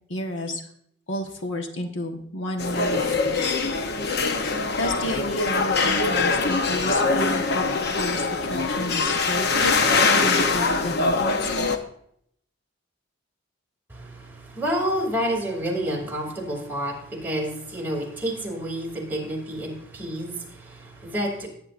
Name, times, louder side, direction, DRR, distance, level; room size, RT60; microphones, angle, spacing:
voice 1, 0.1-0.6 1.1-3.5 4.8-11.7, left 1 dB, 70° left, 3 dB, 1.3 m, -31 dB
sound 1, 2.6-11.8, left 3 dB, 55° left, 0.8 m, -23 dB
voice 2, 13.9-21.5, equal, 10° right, 0 dB, 2.6 m, -29 dB
18.5 x 9.1 x 2.5 m, 0.69 s
head